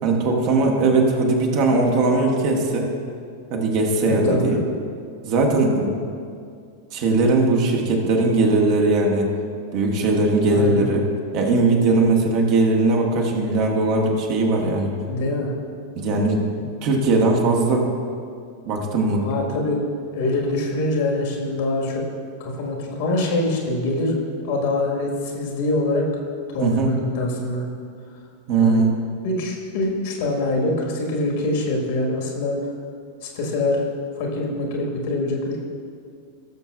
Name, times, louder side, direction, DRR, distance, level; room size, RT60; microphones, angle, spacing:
voice 1, 0.0-2.9 3.5-4.6 5.2-5.9 6.9-9.3 9.7-11.0 11.3-14.9 15.9-16.4 16.8-17.9 18.7-19.2 26.6-26.9 28.5-28.9, right 3 dB, 45° right, 0 dB, 1.5 m, -19 dB
voice 2, 4.0-4.6 10.5-10.8 15.1-15.5 19.2-19.8 20.1-22.0 22.4-24.2 24.4-26.1 26.5-27.7 28.6-28.9 29.2-32.6 33.2-33.8 34.2-35.6, left 2 dB, 50° left, -1 dB, 1.8 m, -24 dB
17.5 x 6.9 x 2.5 m, 2.3 s
figure-of-eight pair, 90°, 0 cm